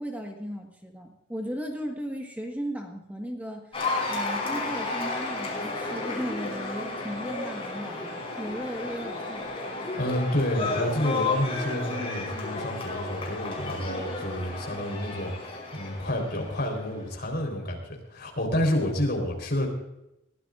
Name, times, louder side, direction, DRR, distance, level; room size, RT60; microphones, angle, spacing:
voice 1, 0.0-3.8 4.1-9.5, equal, 10° right, 1 dB, 1.5 m, -36 dB
Cheering / Applause, 3.7-17.1, left 2 dB, 30° left, 5.1 m, -33 dB
voice 2, 10.0-15.3 15.7-19.7, left 1 dB, 55° left, 1 dB, 4.0 m, -29 dB
21.5 x 15.5 x 2.5 m, 0.87 s
head